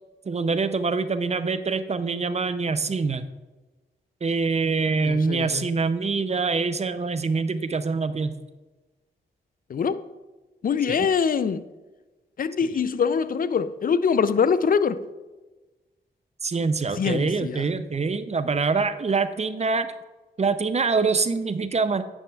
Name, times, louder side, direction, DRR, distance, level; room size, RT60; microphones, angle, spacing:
voice 1, 0.3-3.3 4.2-8.3 10.9-11.0 12.6-12.8 16.4-19.9 20.4-22.0, right 4 dB, 35° right, 0.5 m, -25 dB
voice 2, 5.0-5.7 9.7-10.1 10.6-11.6 12.4-15.0 17.0-17.6, left 6 dB, 50° left, 0.4 m, -24 dB
10.0 x 6.3 x 2.3 m
supercardioid pair, 40°, 19 cm